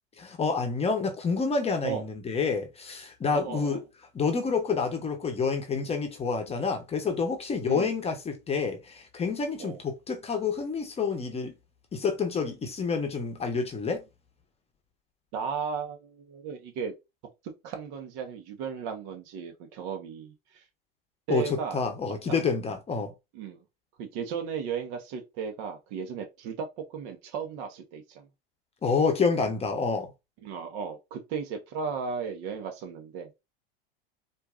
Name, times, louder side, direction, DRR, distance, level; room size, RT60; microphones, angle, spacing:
voice 1, 0.2-3.8 4.1-11.5 11.9-14.0 21.3-23.1 28.8-30.1, left 5 dB, 20° left, 0.9 m, -28 dB
voice 2, 3.3-3.8 7.6-7.9 9.6-9.8 15.3-16.9 17.6-20.6 21.3-22.4 23.3-23.6 24.0-28.3 30.4-33.4, right 6 dB, 55° right, 1.2 m, -35 dB
4.4 x 2.7 x 2.4 m
hypercardioid pair, 105°, 30 cm